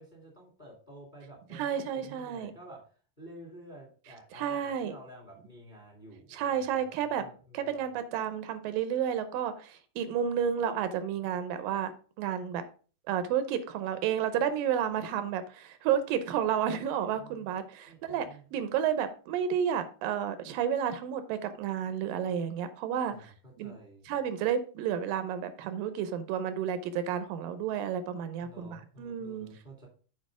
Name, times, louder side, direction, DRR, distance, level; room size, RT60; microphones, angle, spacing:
voice 1, 0.0-2.8 3.2-7.8 17.2-17.5 17.8-18.4 23.1-23.3 23.6-24.1 28.4-29.9, right 1 dB, 20° left, 1.4 m, -51 dB
voice 2, 1.5-2.5 4.3-4.9 6.3-7.2 7.5-11.9 12.2-12.6 13.1-23.7 24.1-29.5, right 8 dB, 80° right, 2.4 m, -31 dB
7.6 x 4.8 x 4.8 m
omnidirectional pair, 4.0 m